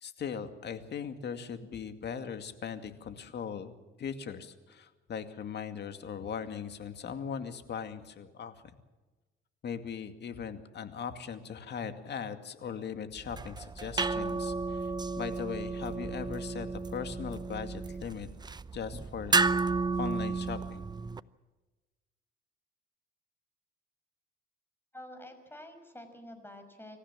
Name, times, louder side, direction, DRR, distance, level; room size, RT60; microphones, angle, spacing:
voice 1, 0.0-3.7 4.0-8.6 9.6-14.9 15.2-18.3 18.7-19.5 20.0-20.8, left 7 dB, 60° left, 8 dB, 2.3 m, -39 dB
sound 1, 13.2-21.2, right 4 dB, 20° right, 0.7 m, -32 dB
voice 2, 24.9-27.0, left 1 dB, 10° left, 7 dB, 5.7 m, -48 dB
26.5 x 15.0 x 7.5 m, 1.2 s
cardioid pair, 90°, 20 cm